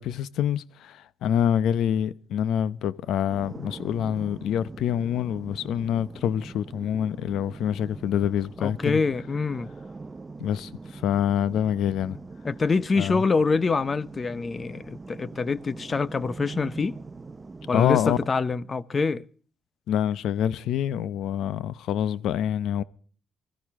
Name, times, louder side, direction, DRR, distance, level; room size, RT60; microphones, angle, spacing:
voice 1, 0.0-9.0 10.4-12.2 13.0-13.2 17.7-18.2 19.9-22.8, left 9 dB, 80° left, 0.7 m, -26 dB
sound 1, 3.3-18.3, right 3 dB, 25° right, 0.6 m, -43 dB
voice 2, 8.6-9.7 12.4-17.0 17.7-19.2, left 4 dB, 35° left, 0.8 m, -25 dB
22.5 x 14.5 x 3.6 m
cardioid pair, 90°, 0 cm